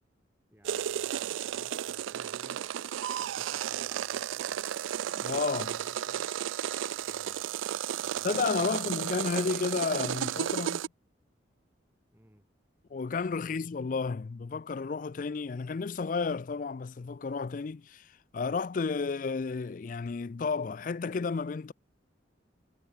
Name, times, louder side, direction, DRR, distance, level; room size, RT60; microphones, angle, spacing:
voice 1, 0.5-2.7 3.2-4.7 5.5-6.4 7.1-7.5 8.0-9.1 12.1-12.5 13.4-13.7, equal, 10° right, 4.4 m, -59 dB
sound 1, 0.6-10.9, right 10 dB, 85° right, 0.4 m, -33 dB
voice 2, 5.1-5.8 8.2-10.8 12.9-21.7, left 4 dB, 45° left, 0.4 m, -32 dB
head